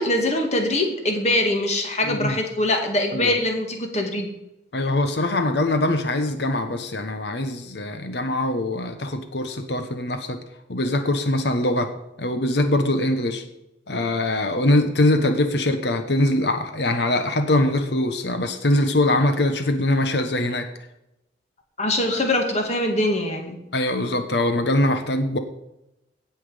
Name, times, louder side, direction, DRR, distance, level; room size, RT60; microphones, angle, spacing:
voice 1, 0.0-4.3 21.8-23.6, left 1 dB, 35° left, 3 dB, 2.1 m, -23 dB
voice 2, 2.0-2.4 3.1-3.4 4.7-10.4 10.7-11.9 12.2-13.4 13.9-20.7 23.7-25.4, left 1 dB, 65° left, 7 dB, 1.0 m, -22 dB
17.0 x 5.9 x 5.0 m, 0.88 s
head